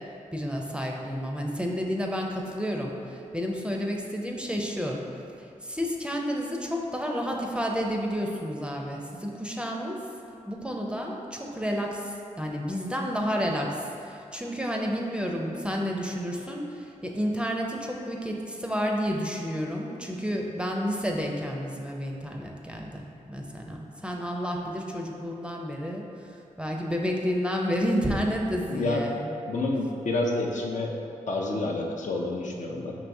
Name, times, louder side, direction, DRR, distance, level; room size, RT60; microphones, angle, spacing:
voice 1, 0.3-5.0 5.6-10.0 10.5-26.1 26.6-29.3, equal, 5° right, 0 dB, 0.5 m, -30 dB
voice 2, 28.7-29.1 29.5-31.0 31.3-33.0, left 2 dB, 65° left, -1 dB, 0.5 m, -28 dB
4.5 x 3.0 x 2.6 m, 2.7 s
cardioid pair, 40°, 14 cm